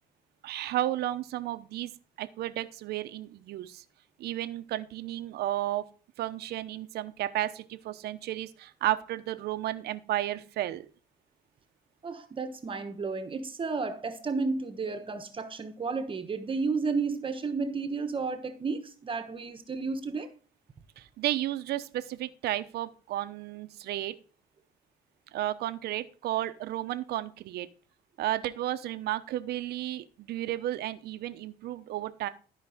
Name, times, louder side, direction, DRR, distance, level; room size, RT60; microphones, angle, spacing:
voice 1, 0.4-1.9 2.2-3.8 4.2-5.9 6.2-10.9 21.0-24.1 25.3-27.7 28.2-32.3, right 14 dB, 75° right, 0.9 m, -33 dB
voice 2, 12.0-20.3, right 4 dB, 30° right, 1.2 m, -32 dB
13.0 x 5.0 x 5.0 m
cardioid pair, 110°, 17 cm